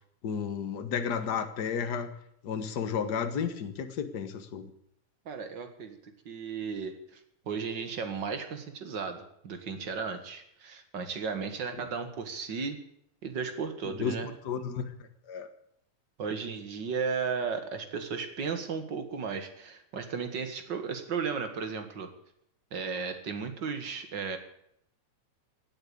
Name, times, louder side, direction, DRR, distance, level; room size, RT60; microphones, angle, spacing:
voice 1, 0.2-2.1 2.4-4.7 13.8-14.9 15.3-15.5, left 7 dB, 45° left, 8 dB, 1.4 m, -32 dB
voice 2, 5.3-6.0 6.3-7.0 7.5-12.8 13.2-14.3 16.2-22.1 22.7-24.4, right 5 dB, 45° right, 7 dB, 2.0 m, -35 dB
17.0 x 8.9 x 8.6 m, 0.73 s
omnidirectional pair, 3.3 m